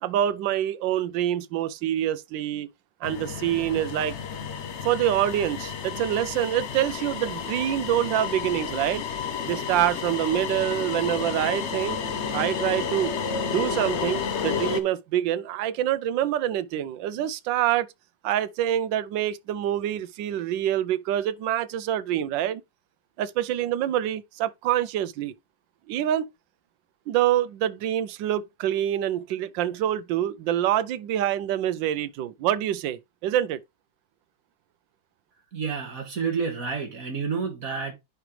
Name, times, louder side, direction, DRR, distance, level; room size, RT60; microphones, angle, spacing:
voice 1, 0.0-2.7 3.0-4.2 4.8-9.0 9.4-12.0 12.3-13.1 13.5-17.9 18.2-22.6 23.2-25.3 25.9-26.3 27.1-33.6, right 11 dB, 80° right, 1.3 m, -26 dB
sound 1, 3.0-14.8, left 6 dB, 55° left, 0.8 m, -31 dB
voice 2, 35.5-37.9, right 5 dB, 50° right, 2.1 m, -29 dB
10.0 x 4.5 x 3.2 m
omnidirectional pair, 2.0 m